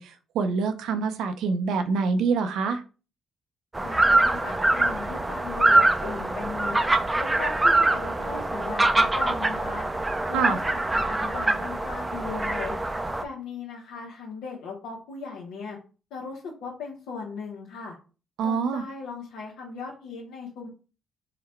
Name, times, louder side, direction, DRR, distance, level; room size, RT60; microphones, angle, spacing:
voice 1, 0.0-2.8 10.3-10.6 18.4-18.8, right 5 dB, 80° right, 9 dB, 0.5 m, -26 dB
sound 1, 3.7-13.2, right 2 dB, 15° right, 0.4 m, -24 dB
voice 2, 3.8-6.8 7.2-9.9 10.3-12.8 13.2-15.8 16.1-17.9 18.4-20.7, left 4 dB, 90° left, -2 dB, 0.8 m, -37 dB
3.8 x 2.2 x 4.3 m, 0.35 s
cardioid pair, 90°, 0 cm